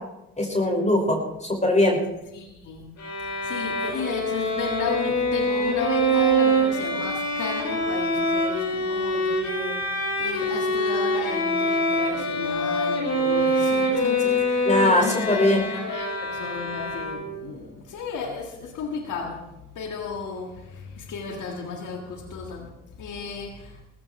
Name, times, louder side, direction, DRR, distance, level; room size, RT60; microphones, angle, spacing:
voice 1, 0.4-2.0 14.6-15.6, left 1 dB, 25° left, -1 dB, 5.6 m, -21 dB
voice 2, 2.3-2.9 3.4-22.7 23.0-23.8, left 5 dB, 80° left, 1 dB, 1.8 m, -34 dB
Bowed string instrument, 3.0-17.5, equal, 65° left, 5.4 m, -25 dB
19.0 x 15.5 x 3.2 m, 0.93 s
supercardioid pair, 45°, 30 cm